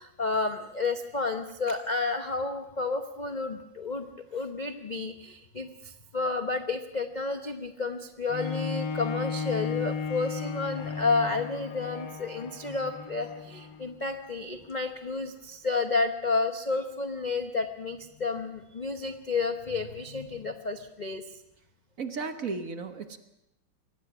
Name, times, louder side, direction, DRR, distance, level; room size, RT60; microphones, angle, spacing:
voice 1, 0.0-21.2, left 3 dB, 40° left, 7 dB, 0.6 m, -31 dB
Bowed string instrument, 8.3-13.9 14.6-14.7, left 5 dB, 65° left, 1.9 m, -35 dB
voice 2, 22.0-23.2, right 4 dB, 45° right, 8 dB, 1.4 m, -34 dB
23.0 x 18.5 x 6.1 m, 0.85 s
omnidirectional pair, 2.2 m